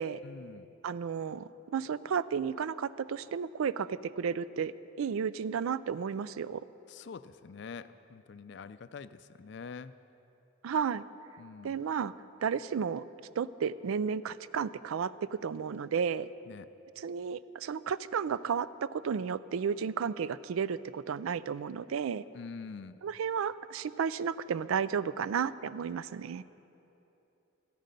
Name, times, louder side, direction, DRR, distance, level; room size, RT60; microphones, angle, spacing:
voice 1, 0.2-0.8 6.9-10.0 11.4-11.8 16.5-16.7 22.3-23.0, left 5 dB, 55° left, 14 dB, 0.4 m, -45 dB
voice 2, 0.8-4.7 5.0-6.6 10.6-11.0 11.6-12.1 12.4-13.1 13.4-16.3 17.0-22.2 23.0-26.4, right 6 dB, 85° right, 17 dB, 0.4 m, -33 dB
14.0 x 13.5 x 5.2 m, 2.9 s
head